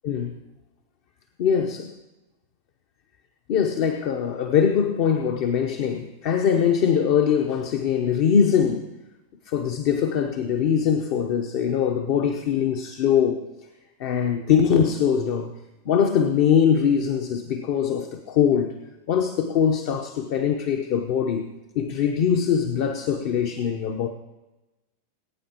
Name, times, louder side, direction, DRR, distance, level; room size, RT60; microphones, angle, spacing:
voice 1, 1.4-1.8 3.5-8.9 9.5-13.4 14.0-15.5 15.9-18.7 19.1-21.4 21.7-24.1, left 7 dB, 45° left, 5 dB, 0.8 m, -22 dB
20.5 x 9.3 x 2.9 m, 1.1 s
figure-of-eight pair, 90°, 0 cm